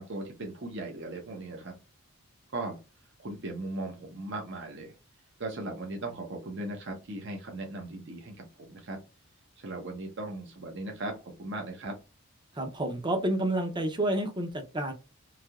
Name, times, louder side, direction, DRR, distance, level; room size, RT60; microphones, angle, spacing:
voice 1, 0.0-1.7 2.5-2.8 3.2-5.0 5.4-9.0 9.6-11.9, right 2 dB, 60° right, 1 dB, 0.7 m, -38 dB
voice 2, 12.5-14.9, right 1 dB, 20° right, 6 dB, 0.6 m, -29 dB
3.3 x 2.7 x 2.3 m, 0.29 s
head